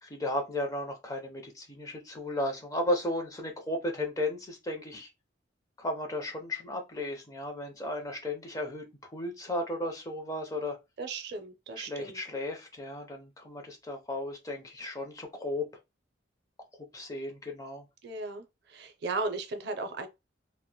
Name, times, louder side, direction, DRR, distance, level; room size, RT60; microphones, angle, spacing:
voice 1, 0.0-5.1 5.8-10.8 11.8-15.7 16.7-17.9, left 1 dB, 20° left, 0.5 m, -35 dB
voice 2, 11.0-12.2 18.0-18.4 18.7-20.1, right 3 dB, 60° right, 0.5 m, -36 dB
2.9 x 2.1 x 2.2 m
head